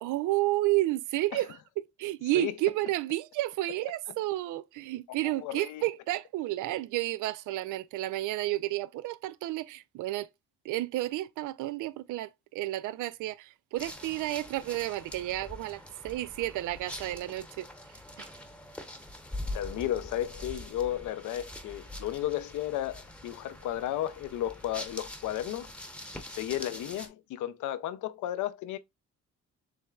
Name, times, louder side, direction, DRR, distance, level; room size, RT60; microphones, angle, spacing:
voice 1, 0.0-10.3 10.6-17.7 18.2-18.3, right 16 dB, 85° right, 0.5 m, -31 dB
voice 2, 5.2-5.8 19.5-25.7 26.3-28.8, left 12 dB, 80° left, 0.6 m, -33 dB
sound 1, 13.8-27.1, left 1 dB, 5° left, 0.8 m, -44 dB
7.0 x 3.2 x 2.3 m
cardioid pair, 90°, 30 cm